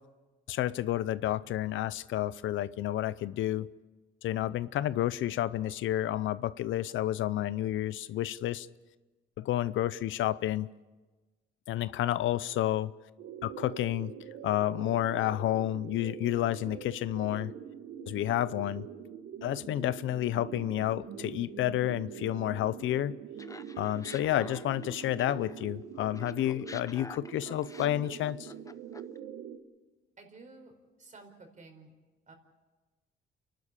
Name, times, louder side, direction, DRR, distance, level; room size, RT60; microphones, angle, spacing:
voice 1, 0.5-3.7 4.2-8.7 9.4-10.7 11.7-12.9 13.4-14.1 14.4-17.5 18.1-18.9 19.4-23.1 23.8-28.5, left 13 dB, 75° left, 17 dB, 0.6 m, -30 dB
sound 1, 13.2-29.6, right 8 dB, 85° right, 1.6 m, -44 dB
Laughter, 23.4-25.7 26.0-29.2, left 3 dB, 15° left, 0.7 m, -48 dB
voice 2, 30.2-30.7 31.0-31.9 32.3-32.4, right 3 dB, 40° right, 5 dB, 4.6 m, -52 dB
29.0 x 12.0 x 8.5 m, 1.2 s
cardioid pair, 90°, 20 cm